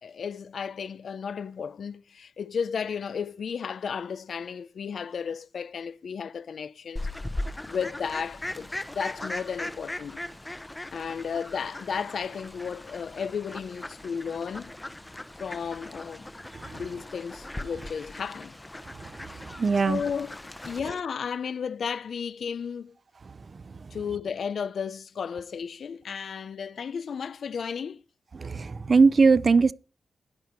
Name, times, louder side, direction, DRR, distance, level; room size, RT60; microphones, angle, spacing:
voice 1, 0.0-7.1 7.7-8.7 8.9-10.2 10.9-14.7 15.4-16.2 16.7-18.5 19.9-20.4 20.6-23.0 23.9-28.0, left 6 dB, 65° left, 0.5 m, -33 dB
Fowl, 7.0-20.8, left 1 dB, 15° left, 0.8 m, -39 dB
voice 2, 19.4-20.0 28.3-29.7, right 4 dB, 40° right, 0.6 m, -20 dB
15.0 x 10.5 x 4.5 m
wide cardioid pair, 135°, 0 cm